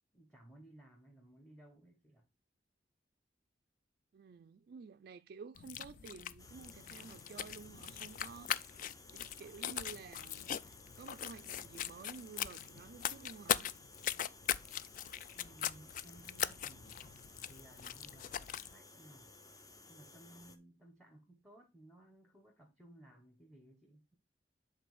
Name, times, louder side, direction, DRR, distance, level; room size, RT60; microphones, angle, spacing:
voice 1, 0.1-2.3 15.3-17.2 17.5-19.3 19.9-24.1, right 1 dB, 5° left, 1.1 m, -59 dB
voice 2, 4.1-8.7 9.1-13.7, right 5 dB, 55° right, 0.3 m, -52 dB
sound 1, 5.5-18.7, left 10 dB, 45° left, 0.3 m, -41 dB
sound 2, 6.4-20.6, left 2 dB, 20° left, 0.7 m, -58 dB
7.7 x 3.8 x 4.8 m
head